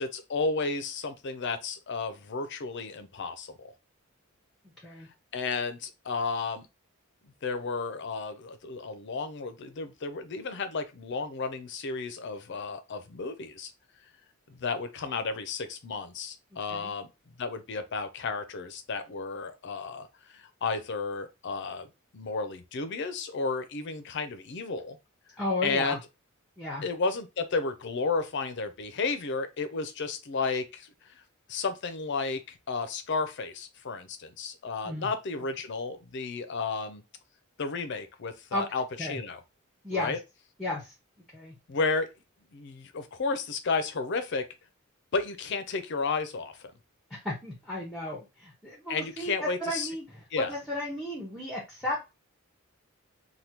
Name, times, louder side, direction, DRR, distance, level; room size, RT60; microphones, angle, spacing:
voice 1, 0.0-3.7 5.3-6.7 7.4-13.7 14.5-21.9 22.1-25.0 25.6-26.0 26.8-31.2 31.5-37.0 37.6-39.4 39.9-40.2 41.7-42.1 42.5-44.5 45.1-46.7 48.9-49.9 50.3-50.5, left 4 dB, 55° left, 0.5 m, -33 dB
voice 2, 25.4-26.0 26.6-26.9 34.8-35.1 38.5-38.7 39.0-39.2 39.8-40.2 40.6-40.9 41.3-41.6 47.1-52.1, left 1 dB, ahead, 0.7 m, -34 dB
3.4 x 2.2 x 2.8 m
head